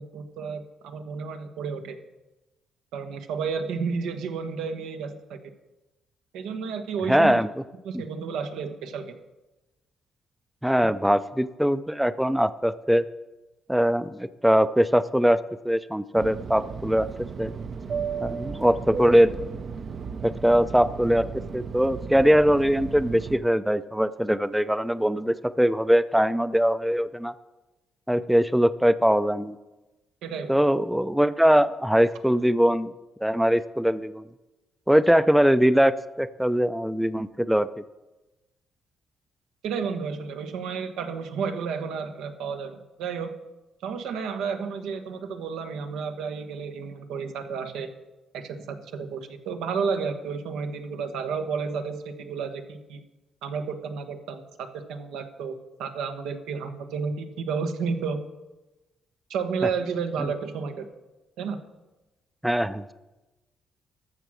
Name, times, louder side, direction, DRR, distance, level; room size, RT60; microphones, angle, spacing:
voice 1, 0.0-2.0 2.9-5.4 6.3-7.4 7.8-9.1 30.2-30.6 39.6-43.3 43.8-47.9 48.3-53.0 53.4-58.2 59.3-60.9 61.4-61.6, right 5 dB, 90° right, 7 dB, 1.0 m, -31 dB
voice 2, 7.1-7.5 7.9-8.0 10.6-13.0 13.7-15.4 15.6-17.1 17.4-17.5 18.2-19.3 20.2-27.3 28.1-29.6 30.5-32.9 33.2-34.2 34.9-37.7 62.4-62.9, equal, 5° right, 14 dB, 0.4 m, -22 dB
Fixed-wing aircraft airplane, 16.1-23.4, right 6 dB, 50° right, 0.6 m, -34 dB
13.5 x 6.1 x 6.2 m, 1.1 s
cardioid pair, 90°, 0 cm